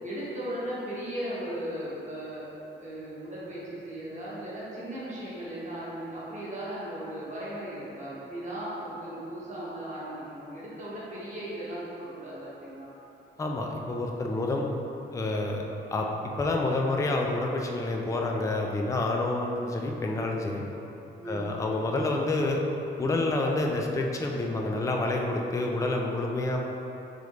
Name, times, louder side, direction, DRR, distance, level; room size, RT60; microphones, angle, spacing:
voice 1, 0.0-2.5 2.7-12.9 21.2-21.6, right 1 dB, 35° right, -9 dB, 1.3 m, -37 dB
voice 2, 13.4-14.7 15.1-15.6 15.9-16.1 16.4-20.6 21.2-22.6 23.0-26.6, left 2 dB, 15° left, 1 dB, 0.4 m, -28 dB
3.7 x 3.1 x 3.2 m, 3.0 s
cardioid pair, 80°, 20 cm